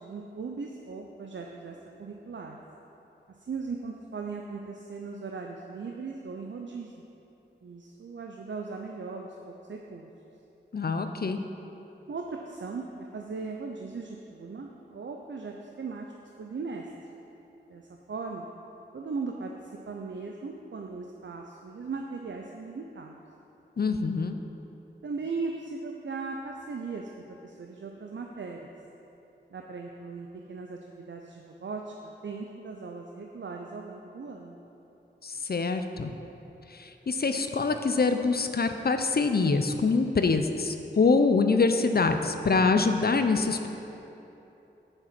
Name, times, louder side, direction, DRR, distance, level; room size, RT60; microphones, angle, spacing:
voice 1, 0.0-2.6 3.5-7.0 7.6-10.1 12.1-16.9 17.7-18.5 18.9-23.2 25.0-28.7 29.5-34.6, right 4 dB, 75° right, 1 dB, 0.6 m, -38 dB
voice 2, 10.7-11.4 23.8-24.4 35.2-36.1 36.7-43.7, left 4 dB, 55° left, 7 dB, 0.5 m, -25 dB
7.3 x 6.5 x 6.0 m, 3.0 s
wide cardioid pair, 50°, 20 cm